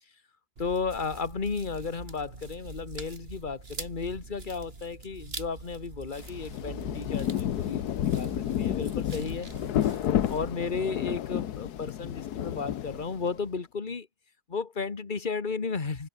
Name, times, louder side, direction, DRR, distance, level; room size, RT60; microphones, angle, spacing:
voice 1, 0.6-9.5 10.3-14.1 14.5-16.1, left 5 dB, 35° left, 1.7 m, -34 dB
sound 1, 0.6-10.5, right 3 dB, 40° right, 2.7 m, -44 dB
Rain, 6.2-13.4, left 11 dB, 90° left, 1.5 m, -31 dB
omnidirectional pair, 1.6 m